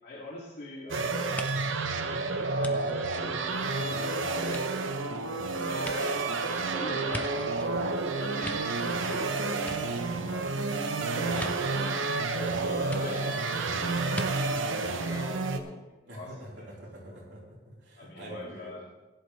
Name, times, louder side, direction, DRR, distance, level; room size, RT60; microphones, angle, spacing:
voice 1, 0.0-1.5 2.0-4.7 5.6-7.8 8.3-9.9 10.2-10.7 11.0-11.7 12.3-15.8 16.1-16.7 17.0-17.2 18.0-18.8, left 1 dB, 55° left, -4 dB, 2.4 m, -44 dB
sound 1, 0.9-15.6, right 3 dB, 90° right, 0.9 m, -30 dB
sound 2, 1.4-4.0 4.4-7.8 8.2-9.2 9.5-10.5 11.4-11.5 12.9-13.0 14.1-14.3 14.6-14.7, left 1 dB, 10° left, 0.7 m, -42 dB
voice 2, 16.1-18.7, equal, 65° right, -5 dB, 4.2 m, -45 dB
16.0 x 10.5 x 3.3 m, 1.1 s
head